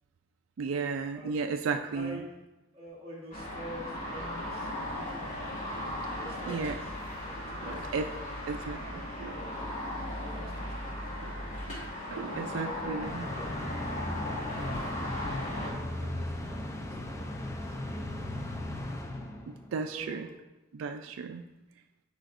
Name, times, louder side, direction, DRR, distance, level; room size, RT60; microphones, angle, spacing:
voice 1, 0.6-2.2 6.5-6.7 7.7-8.1 8.5-9.4 11.2-11.3 11.7-11.8 12.1-13.2 19.5-20.3 20.8-21.5, right 5 dB, 75° right, 6 dB, 0.4 m, -34 dB
voice 2, 1.1-2.4 2.7-5.3 6.1-6.9 7.2-11.3 12.3-14.9 15.3-18.3 18.7-18.8 19.9-20.4, equal, 30° right, -6 dB, 2.2 m, -47 dB
sound 1, 3.3-15.7, left 1 dB, 40° left, 2.7 m, -37 dB
sound 2, 13.0-19.8, left 1 dB, 15° left, 0.6 m, -37 dB
12.0 x 4.9 x 2.6 m, 1.0 s
head